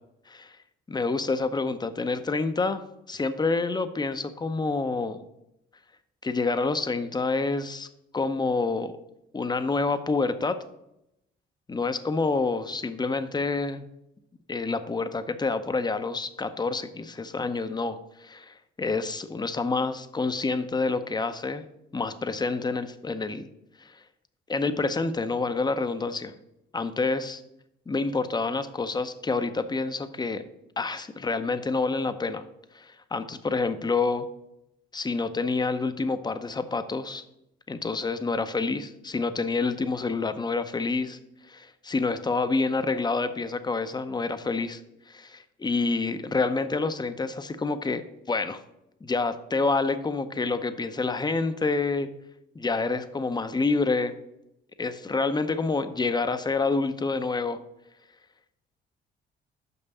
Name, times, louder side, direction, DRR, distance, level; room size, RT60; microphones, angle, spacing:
voice 1, 0.9-5.2 6.2-7.9 8.1-8.9 9.3-10.6 11.7-13.9 14.5-21.6 21.9-23.5 23.8-24.0 24.5-26.3 26.7-27.4 27.9-30.4 30.8-32.4 32.7-34.3 34.9-37.2 37.7-41.2 41.5-44.8 45.1-48.6 49.0-52.1 52.5-54.1 54.8-57.6, left 3 dB, 20° left, 10 dB, 0.6 m, -28 dB
5.8 x 5.5 x 6.7 m, 0.86 s
cardioid pair, 90°, 20 cm